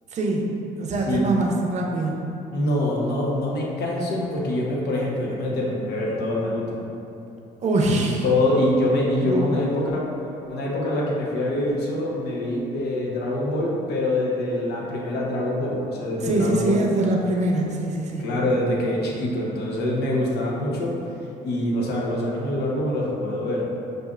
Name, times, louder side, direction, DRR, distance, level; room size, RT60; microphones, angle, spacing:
voice 1, 0.1-2.2 7.6-8.2 9.2-9.7 16.2-18.3, right 2 dB, 40° right, 0 dB, 0.6 m, -24 dB
voice 2, 2.5-6.8 8.0-10.0 10.5-16.8 18.2-20.9 21.4-23.6, left 1 dB, 75° left, -3 dB, 0.9 m, -24 dB
6.4 x 2.5 x 2.4 m, 2.9 s
cardioid pair, 110°, 17 cm